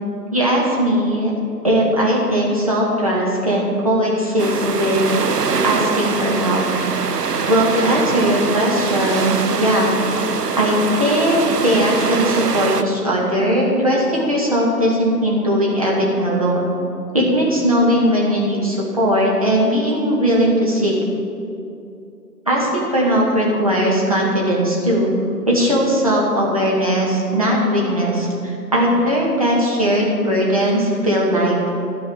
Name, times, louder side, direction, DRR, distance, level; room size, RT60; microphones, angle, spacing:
voice 1, 0.3-1.3 1.6-5.1 5.6-6.6 7.5-10.0 10.6-16.7 17.1-20.9 22.5-25.1 25.5-31.7, equal, 20° right, -5 dB, 1.3 m, -18 dB
sound 1, 4.4-12.8, right 5 dB, 70° right, 0.7 m, -23 dB
12.5 x 5.4 x 6.9 m, 2.6 s
figure-of-eight pair, 160°, 50 cm